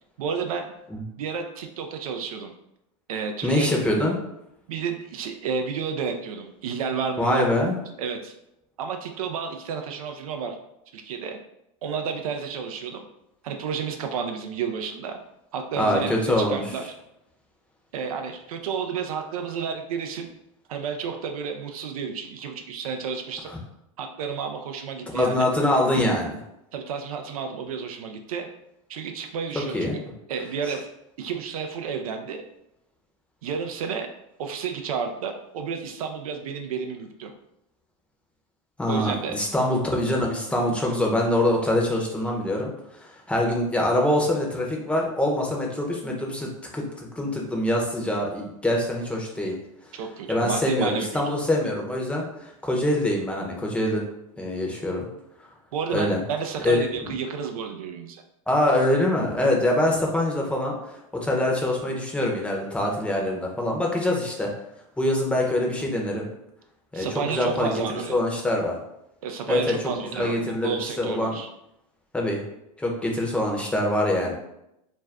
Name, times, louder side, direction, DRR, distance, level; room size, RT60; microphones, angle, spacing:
voice 1, 0.2-0.7 1.2-2.5 3.1-3.7 4.7-7.4 8.0-8.3 8.8-10.6 10.9-11.4 11.8-13.0 13.4-15.2 15.5-16.9 17.9-20.3 20.7-23.5 24.0-25.4 26.7-28.5 28.9-29.9 30.3-30.9 31.2-32.4 33.4-34.1 34.4-37.3 38.9-39.4 49.9-51.2 55.7-58.2 66.9-68.2 69.2-71.5, right 6 dB, 85° right, 5 dB, 0.4 m, -31 dB
voice 2, 3.4-4.2 7.2-7.8 15.8-16.6 25.1-26.4 29.5-30.0 38.8-42.7 43.3-49.5 50.3-54.0 54.4-55.1 55.9-56.2 56.6-56.9 58.5-60.7 61.1-64.5 65.0-66.3 66.9-68.8 69.5-71.3 72.1-72.4 72.8-74.3, left 1 dB, 5° left, -1 dB, 0.7 m, -24 dB
2.5 x 2.2 x 3.3 m, 0.84 s
hypercardioid pair, 100°, 18 cm